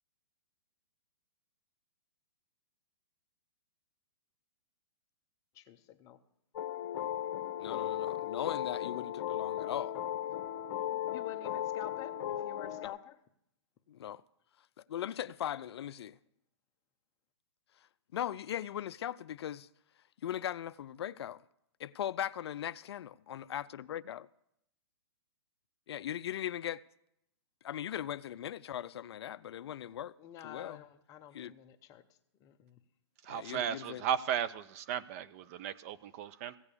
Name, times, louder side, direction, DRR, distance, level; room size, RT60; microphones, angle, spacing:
voice 1, 5.5-6.2 10.9-13.2 30.2-32.0 32.4-32.8, left 10 dB, 25° left, 0.7 m, -49 dB
sound 1, 6.5-12.9, left 12 dB, 50° left, 1.1 m, -36 dB
voice 2, 7.6-10.0 12.8-12.9 13.9-14.2 14.9-16.2 18.1-19.7 20.2-21.4 21.8-24.3 25.9-26.8 27.6-30.8 31.3-31.5 33.3-34.0, left 11 dB, 65° left, 0.4 m, -39 dB
voice 3, 33.2-36.6, right 9 dB, 30° right, 0.4 m, -35 dB
16.0 x 7.0 x 6.8 m
hypercardioid pair, 145°, 15 cm